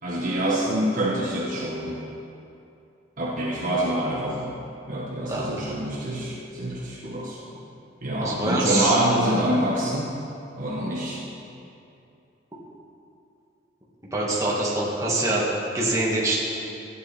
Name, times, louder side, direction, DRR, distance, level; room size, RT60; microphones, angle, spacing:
voice 1, 0.0-2.0 3.2-4.5 4.9-7.4 8.0-10.1 10.6-11.2, right 1 dB, 45° right, -6 dB, 1.4 m, -26 dB
voice 2, 5.3-5.7 8.2-9.0 14.1-16.4, right 2 dB, 15° right, -6 dB, 2.0 m, -25 dB
15.0 x 9.2 x 4.3 m, 2.7 s
head